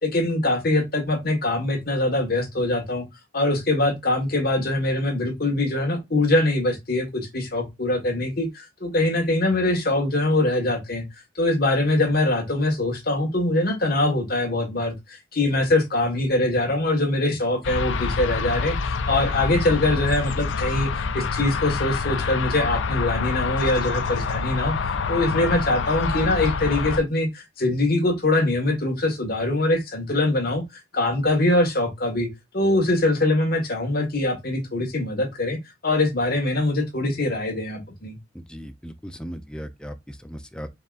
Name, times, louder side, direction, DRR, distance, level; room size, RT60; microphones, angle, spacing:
voice 1, 0.0-3.1 3.3-11.1 11.3-24.7 25.1-32.3 32.5-38.2, left 2 dB, 50° left, 1.5 m, -23 dB
sound 1, 17.6-27.0, left 5 dB, 70° left, 0.5 m, -26 dB
voice 2, 38.3-40.7, equal, 5° left, 0.5 m, -37 dB
4.6 x 3.6 x 2.5 m
head